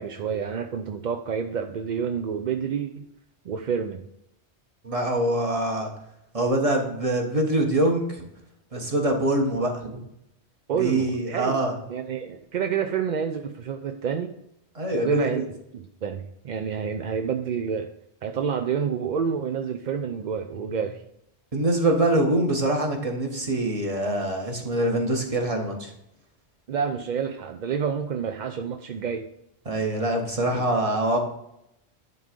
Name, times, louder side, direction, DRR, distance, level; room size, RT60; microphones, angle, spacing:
voice 1, 0.0-3.0 3.4-4.0 10.7-11.6 11.9-14.3 14.9-17.9 18.2-21.0 26.7-29.3, right 7 dB, 55° right, 5 dB, 0.5 m, -28 dB
voice 2, 4.8-5.9 6.3-8.2 8.7-10.0 10.8-11.7 14.7-15.4 20.5-20.8 21.5-25.9 29.6-31.2, right 1 dB, 30° right, 2 dB, 1.4 m, -24 dB
11.0 x 3.8 x 5.2 m, 0.81 s
omnidirectional pair, 1.1 m